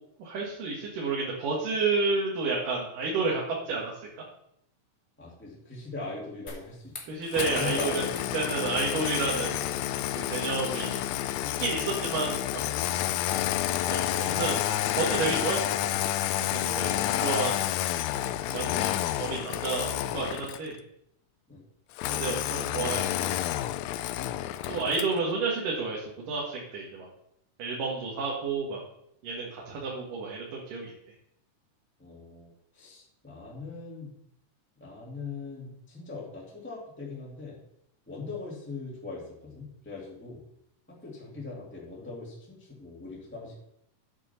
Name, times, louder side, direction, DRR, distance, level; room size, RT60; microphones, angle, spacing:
voice 1, 0.2-4.2 7.1-8.1 8.3-9.6 10.3-11.0 11.6-12.6 13.9-14.7 15.0-15.9 16.5-17.7 18.5-20.8 22.1-23.3 24.7-27.1 27.6-28.8 29.2-30.9, right 4 dB, 80° right, -4 dB, 3.4 m, -31 dB
voice 2, 5.2-7.2 7.5-8.2 21.5-21.6 32.0-34.1 34.8-37.6 38.1-40.4 40.9-43.5, left 3 dB, 5° left, -5 dB, 2.0 m, -41 dB
sound 1, 6.5-13.0, left 3 dB, 55° left, 0.7 m, -47 dB
Engine starting, 7.3-20.7 22.0-25.2, left 13 dB, 85° left, 1.6 m, -29 dB
9.0 x 6.7 x 5.8 m, 0.74 s
omnidirectional pair, 3.7 m